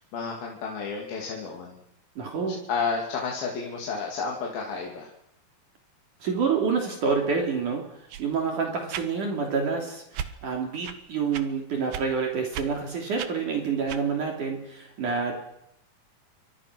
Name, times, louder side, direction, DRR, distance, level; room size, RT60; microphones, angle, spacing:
voice 1, 0.0-1.8 2.5-5.1, left 5 dB, 70° left, -1 dB, 4.6 m, -31 dB
voice 2, 2.2-2.6 6.2-7.8 8.2-10.0 10.4-15.4, right 5 dB, 55° right, 2 dB, 4.3 m, -27 dB
sound 1, 8.1-8.3 8.9-9.1 10.1-10.3 10.8-11.0 11.3-11.4 11.9-12.1 12.5-12.7 13.2-13.3 13.9-14.0, right 9 dB, 75° right, 3.2 m, -35 dB
29.5 x 25.0 x 6.3 m, 0.79 s
omnidirectional pair, 4.5 m